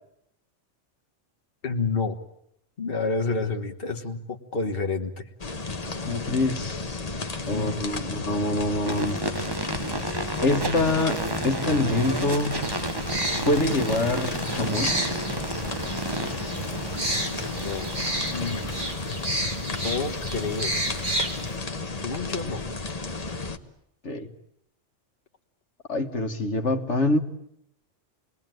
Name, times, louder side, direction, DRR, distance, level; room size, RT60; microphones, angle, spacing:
voice 1, 1.6-2.2 2.8-5.2 7.5-8.3 17.6-17.9 18.3-18.6 19.8-20.7 22.0-22.6, left 4 dB, 50° left, 3 dB, 1.7 m, -29 dB
sound 1, 5.4-23.6, left 3 dB, 30° left, 1.4 m, -33 dB
voice 2, 6.0-7.2 7.5-9.2 10.4-12.6 13.4-14.9 24.0-24.3 25.9-27.2, left 2 dB, 65° left, 6 dB, 2.0 m, -25 dB
sound 2, 8.8-18.9, right 2 dB, 20° right, 1.0 m, -32 dB
sound 3, 12.6-21.5, right 1 dB, 40° right, 4.2 m, -32 dB
28.5 x 21.0 x 9.2 m, 0.77 s
omnidirectional pair, 1.3 m